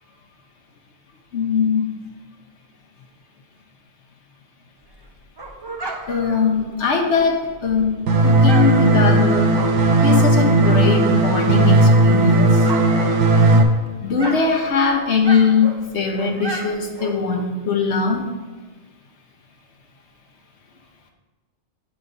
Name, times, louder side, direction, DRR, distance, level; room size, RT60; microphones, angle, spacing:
voice 1, 1.3-1.9 6.1-9.5 10.0-12.7 14.0-18.2, left 5 dB, 75° left, 0 dB, 1.1 m, -21 dB
Dog, 4.8-11.1 11.5-13.8 14.0-17.5, right 2 dB, 30° right, 0.5 m, -34 dB
sound 1, 8.1-13.6, right 2 dB, 85° right, 1.0 m, -15 dB
8.3 x 3.2 x 5.3 m, 1.3 s
omnidirectional pair, 1.2 m